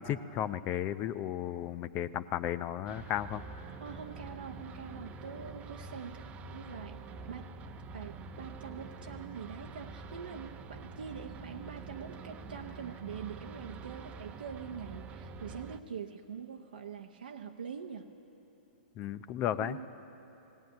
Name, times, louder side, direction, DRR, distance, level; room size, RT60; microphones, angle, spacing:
voice 1, 0.0-3.4 19.0-19.8, left 11 dB, 30° left, 13 dB, 0.5 m, -34 dB
sound 1, 2.9-15.8, right 4 dB, 25° right, 0.8 m, -46 dB
voice 2, 3.8-7.5 7.9-18.1 19.6-19.9, right 7 dB, 75° right, 2 dB, 1.0 m, -44 dB
18.5 x 17.0 x 9.2 m, 3.0 s
hypercardioid pair, 120°, 5 cm